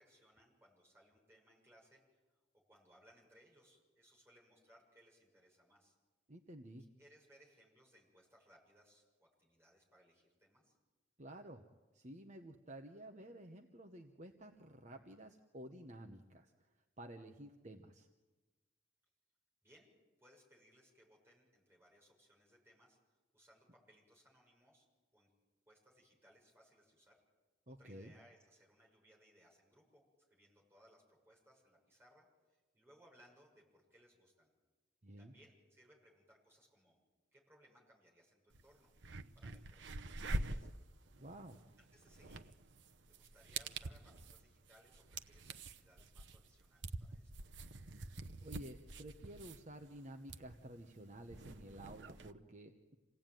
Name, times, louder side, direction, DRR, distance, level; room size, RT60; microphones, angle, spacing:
voice 1, 0.0-2.4 2.7-6.0 7.0-10.7 19.6-19.9 20.2-24.9 25.1-25.3 25.7-27.2 27.7-34.5 35.2-37.0 37.3-38.9 39.3-40.8 41.8-42.5 43.1-47.4, equal, 15° right, -2 dB, 6.6 m, -67 dB
voice 2, 6.3-6.9 11.2-11.6 11.9-16.7 17.0-18.1 27.7-28.1 35.0-35.3 41.2-41.6 48.4-53.0, right 1 dB, 40° right, 5 dB, 1.1 m, -52 dB
sound 1, 38.5-38.6 38.9-52.3, right 2 dB, 75° right, 0.9 m, -46 dB
27.5 x 17.5 x 9.2 m, 1.3 s
head